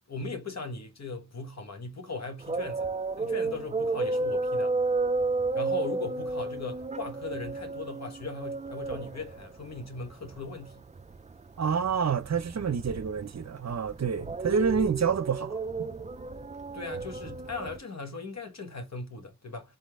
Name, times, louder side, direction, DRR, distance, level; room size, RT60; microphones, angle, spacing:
voice 1, 0.1-2.9 3.2-4.8 5.5-10.9 14.7-14.8 16.7-19.8, left 3 dB, 55° left, 1.5 m, -39 dB
sound 1, 2.4-17.8, right 3 dB, 25° right, 0.4 m, -32 dB
voice 2, 11.6-15.9, right 6 dB, 55° right, 0.8 m, -28 dB
4.1 x 4.0 x 3.2 m
wide cardioid pair, 85°, 31 cm